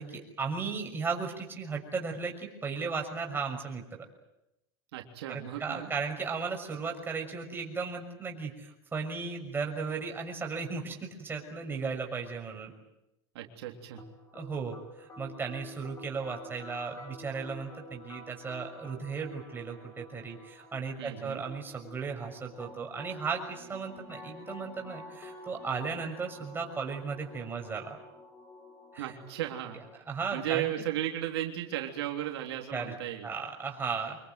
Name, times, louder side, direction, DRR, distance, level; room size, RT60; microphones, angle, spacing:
voice 1, 0.0-3.8 5.3-12.7 14.4-28.0 28.9-29.1 30.1-30.7 32.7-32.9 33.2-34.2, right 5 dB, 15° right, 1 dB, 6.3 m, -36 dB
voice 2, 4.9-5.9 13.4-14.0 21.0-21.4 29.0-30.0 30.3-33.3, right 13 dB, 80° right, 3 dB, 3.4 m, -35 dB
sound 1, 14.0-30.0, left 1 dB, 20° left, 6.9 m, -49 dB
26.0 x 22.0 x 9.2 m, 0.89 s
supercardioid pair, 130°, 13 cm